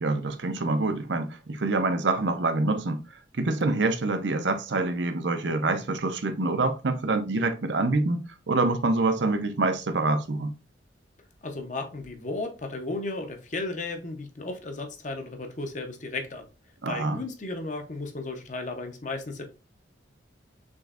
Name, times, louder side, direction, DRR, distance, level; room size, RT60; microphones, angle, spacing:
voice 1, 0.0-3.0 3.4-10.5 16.8-17.2, right 2 dB, 70° right, 0.7 m, -26 dB
voice 2, 11.4-16.5 16.9-19.5, left 2 dB, 40° left, 0.8 m, -34 dB
6.2 x 3.2 x 2.5 m
head